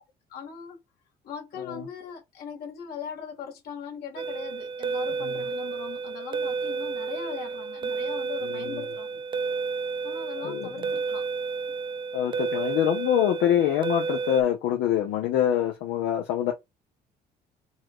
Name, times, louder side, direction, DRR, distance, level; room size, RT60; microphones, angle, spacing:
voice 1, 0.3-0.8 1.2-9.2 10.0-11.3, left 7 dB, 70° left, 2.0 m, -40 dB
sound 1, 4.2-14.4, right 5 dB, 30° right, 0.4 m, -31 dB
voice 2, 8.4-8.8 10.4-10.7 12.1-16.5, left 11 dB, 85° left, 0.8 m, -25 dB
4.3 x 2.5 x 4.5 m
cardioid pair, 110°, 17 cm